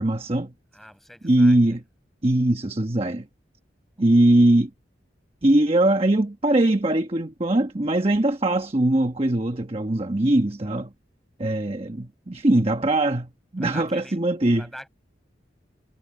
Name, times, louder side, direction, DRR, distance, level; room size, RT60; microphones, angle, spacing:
voice 1, 0.0-0.5 1.2-1.8 2.2-3.3 4.0-4.7 5.4-10.9 11.4-14.7, right 1 dB, 30° right, 1.2 m, -21 dB
voice 2, 0.7-1.8 3.9-4.2 13.6-14.2 14.5-14.9, equal, ahead, 5.7 m, -44 dB
head